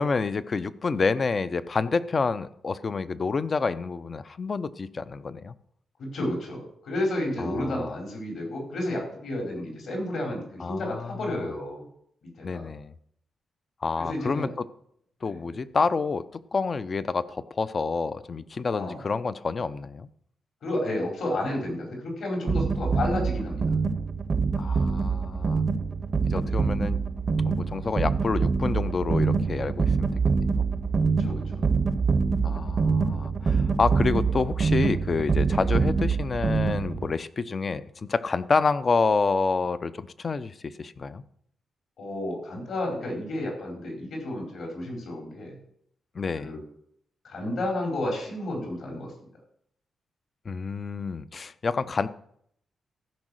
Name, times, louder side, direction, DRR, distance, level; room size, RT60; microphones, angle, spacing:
voice 1, 0.0-5.6 7.4-7.9 10.6-11.1 11.4-11.5 12.4-12.9 13.8-14.5 15.2-20.1 24.6-25.6 26.3-27.0 27.4-30.7 32.4-41.2 46.1-46.5 50.5-52.1, left 4 dB, 35° left, 15 dB, 0.5 m, -28 dB
voice 2, 6.0-11.8 12.4-12.7 14.0-14.5 15.2-15.6 18.7-19.0 20.6-23.7 26.3-26.6 31.2-31.7 35.5-35.7 42.0-45.6 46.4-46.6 47.2-49.1, left 1 dB, 65° left, 0 dB, 4.5 m, -31 dB
sound 1, 22.5-37.1, right 5 dB, 35° right, 0.7 m, -25 dB
14.5 x 5.4 x 6.3 m, 0.70 s
wide cardioid pair, 145°, 0 cm